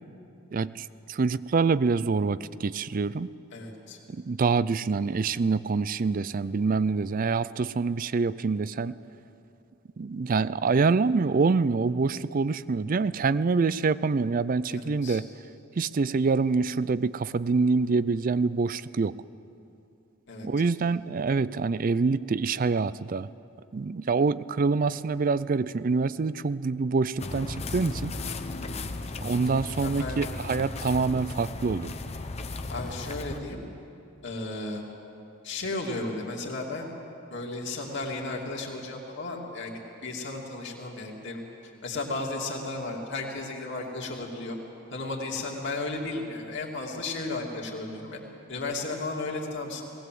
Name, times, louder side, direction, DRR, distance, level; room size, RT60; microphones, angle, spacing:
voice 1, 0.5-3.3 4.1-9.0 10.0-15.3 15.8-19.1 20.4-23.3 23.7-28.1 29.2-31.9, right 4 dB, 40° right, 17 dB, 0.4 m, -26 dB
voice 2, 3.5-4.0 14.7-15.2 20.3-20.5 24.8-25.0 29.8-30.3 32.7-33.6 34.2-34.8 35.4-36.9 37.3-39.7 40.0-41.4 41.8-44.6 44.9-48.2 48.5-49.9, left 2 dB, 55° left, -1 dB, 2.7 m, -34 dB
sound 1, 27.2-33.4, left 2 dB, 30° left, 0.7 m, -35 dB
19.5 x 18.5 x 7.7 m, 2.8 s
head